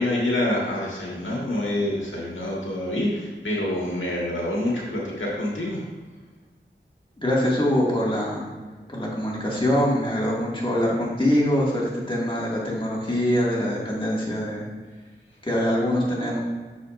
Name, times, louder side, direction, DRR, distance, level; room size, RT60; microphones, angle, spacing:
voice 1, 0.0-5.8, left 1 dB, 80° left, -5 dB, 1.7 m, -26 dB
voice 2, 7.2-8.5 8.9-14.7 15.4-16.4, equal, 25° left, -5 dB, 2.1 m, -24 dB
8.3 x 6.6 x 2.6 m, 1.4 s
wide cardioid pair, 45°, 20 cm